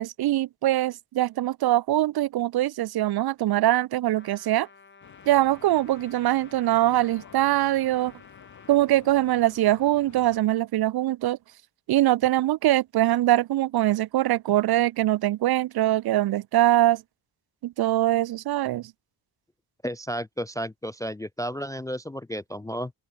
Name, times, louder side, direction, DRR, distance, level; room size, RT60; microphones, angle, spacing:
voice 1, 0.0-4.7 5.3-8.1 8.7-11.4 11.9-17.0 17.6-18.9, right 14 dB, 65° right, 0.6 m, -23 dB
Trumpet, 4.1-8.8, left 4 dB, 30° left, 5.7 m, -52 dB
Stream / Boat Water vehicle, 5.0-10.4, left 8 dB, 45° left, 1.6 m, -50 dB
voice 2, 19.8-22.9, equal, 10° left, 0.3 m, -32 dB
open air
wide cardioid pair, 160°, 41 cm